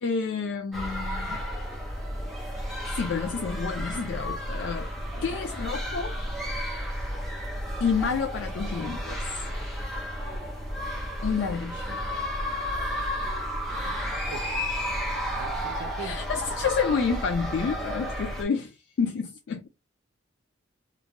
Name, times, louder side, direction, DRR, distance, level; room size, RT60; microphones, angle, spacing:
voice 1, 0.0-1.4 2.9-4.9 5.2-6.2 7.8-9.2 11.2-12.0 16.0-19.7, left 5 dB, 65° left, 0.3 m, -29 dB
sound 1, 0.7-18.4, equal, ahead, 0.6 m, -32 dB
voice 2, 14.3-14.8 15.4-16.2, right 4 dB, 75° right, 0.5 m, -42 dB
2.6 x 2.1 x 2.9 m
head